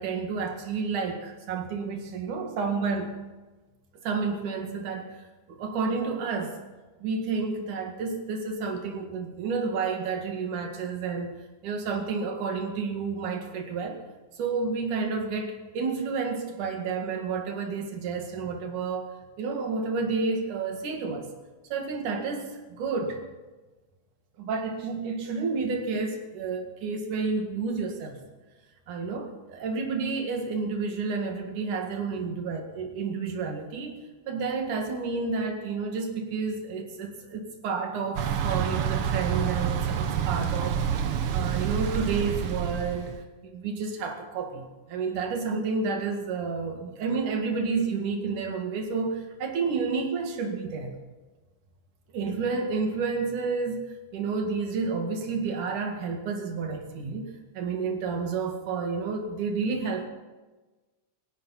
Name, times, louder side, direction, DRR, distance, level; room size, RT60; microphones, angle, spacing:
voice 1, 0.0-3.2 4.0-5.1 5.5-6.6 7.0-14.0 14.4-19.1 19.4-21.3 21.7-23.2 24.4-28.2 28.9-33.9 34.3-40.8 41.3-43.1 43.4-44.6 44.9-50.9 52.1-53.8 54.1-57.3 57.5-60.1, right 4 dB, 80° right, 3 dB, 3.5 m, -30 dB
Thunder / Bicycle, 38.2-43.2, right 8 dB, 65° right, 1.5 m, -28 dB
19.0 x 16.0 x 4.2 m, 1.2 s
omnidirectional pair, 3.5 m